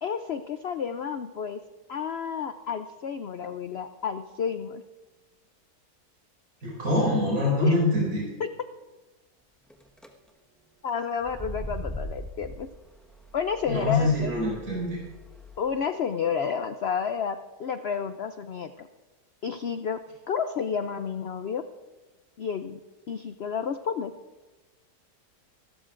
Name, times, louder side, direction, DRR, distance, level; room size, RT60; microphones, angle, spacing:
voice 1, 0.0-1.6 1.9-4.8 7.6-7.8 8.4-8.5 10.8-12.7 13.3-14.3 15.6-18.9 19.4-20.0 20.3-21.6 22.4-22.8 23.1-24.1, left 7 dB, 80° left, 9 dB, 0.5 m, -31 dB
voice 2, 6.6-8.3 13.7-15.0, left 1 dB, 60° right, -6 dB, 6.1 m, -24 dB
sound 1, 9.7-10.1 11.2-15.6, equal, ahead, 1.1 m, -40 dB
26.5 x 13.0 x 2.5 m, 1.2 s
omnidirectional pair, 1.8 m